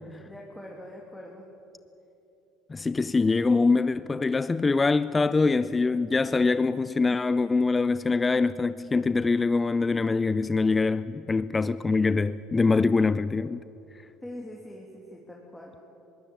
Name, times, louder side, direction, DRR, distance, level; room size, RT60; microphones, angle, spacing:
voice 1, 0.2-1.4 14.2-15.7, left 1 dB, 5° left, 2.9 m, -43 dB
voice 2, 2.7-13.6, left 4 dB, 20° left, 0.5 m, -24 dB
21.5 x 17.0 x 8.6 m
supercardioid pair, 95°, 0 cm